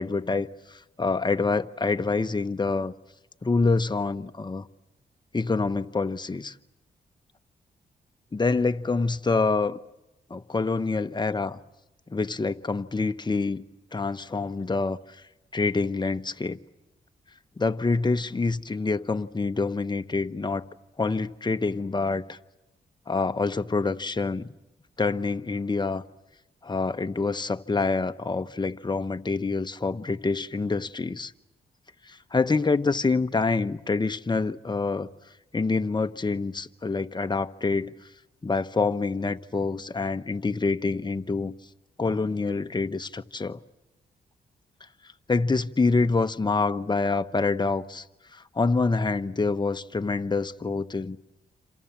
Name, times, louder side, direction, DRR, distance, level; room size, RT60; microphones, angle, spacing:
voice 1, 0.0-2.9 3.4-4.7 5.3-6.5 8.3-9.8 10.3-11.6 12.1-13.6 13.9-15.2 15.5-16.6 17.6-20.7 21.0-22.4 23.1-24.5 25.0-26.0 26.6-31.3 32.1-35.1 35.5-37.9 38.4-41.5 42.0-43.6 45.3-48.0 48.3-51.2, left 3 dB, 25° left, 1.1 m, -26 dB
28.5 x 27.0 x 7.4 m
cardioid pair, 65°, 18 cm